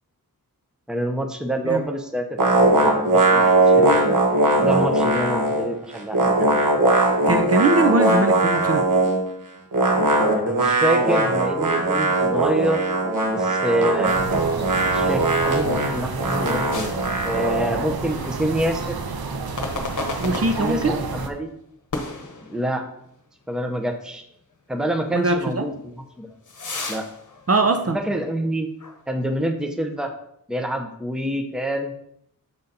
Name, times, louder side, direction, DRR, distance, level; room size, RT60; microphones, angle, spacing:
voice 1, 0.9-4.2 4.6-6.7 10.3-12.8 13.3-14.1 14.9-16.9 17.2-19.0 20.6-21.5 22.5-22.9 23.5-24.2 24.7-26.3 26.9-27.1 27.9-28.7 29.1-30.1 30.5-31.9, right 1 dB, ahead, 4 dB, 0.7 m, -27 dB
sound 1, 2.4-5.7 5.9-9.2 9.7-17.7, right 2 dB, 60° right, 1.3 m, -20 dB
voice 2, 7.3-8.8 20.2-20.9 25.1-25.6 27.5-28.0, right 2 dB, 40° right, 5 dB, 0.6 m, -21 dB
sound 2, 14.1-21.3, right 4 dB, 90° right, 0.7 m, -30 dB
sound 3, 16.7-17.9 18.2-18.4 19.6-21.1 21.9-23.1 23.5-23.6 24.3-24.4 25.7-28.4 28.8-29.0, left 3 dB, 55° left, 1.0 m, -34 dB
7.0 x 4.0 x 4.0 m, 0.72 s
wide cardioid pair, 75°, 36 cm